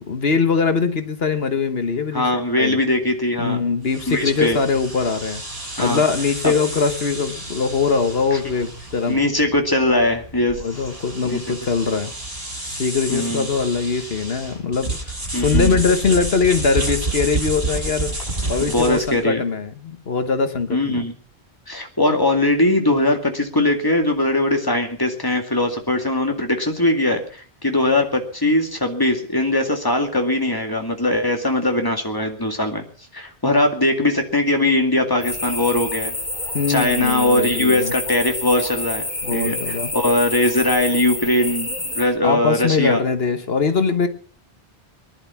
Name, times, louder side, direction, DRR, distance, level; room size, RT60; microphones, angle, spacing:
voice 1, 0.0-2.8 3.4-5.4 5.8-9.2 10.6-12.1 12.7-15.0 15.4-18.1 18.5-21.1 36.5-37.9 39.2-39.9 42.2-44.1, left 5 dB, 65° left, 9 dB, 1.4 m, -22 dB
voice 2, 2.1-3.6 4.1-4.6 5.8-6.0 6.4-6.5 9.1-10.6 11.2-11.4 13.1-13.5 15.3-15.8 18.7-19.4 20.7-21.1 21.7-32.8 33.1-36.1 36.7-39.0 39.3-43.0, left 1 dB, 20° left, 3 dB, 2.3 m, -20 dB
sound 1, 3.8-19.2, right 2 dB, 60° right, 6.5 m, -30 dB
sound 2, 35.2-42.1, left 2 dB, 40° left, 3.0 m, -28 dB
20.0 x 11.5 x 5.8 m, 0.43 s
omnidirectional pair, 1.1 m